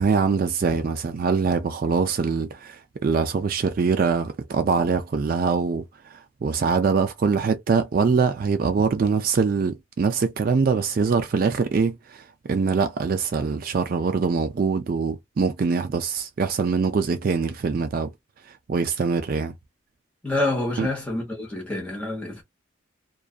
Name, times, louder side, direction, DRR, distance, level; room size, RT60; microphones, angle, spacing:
voice 1, 0.0-5.8 6.1-18.1 18.7-19.5 20.8-20.9, right 5 dB, 45° right, 0.3 m, -23 dB
voice 2, 20.2-22.4, left 2 dB, 5° left, 1.0 m, -27 dB
2.5 x 2.2 x 2.4 m
head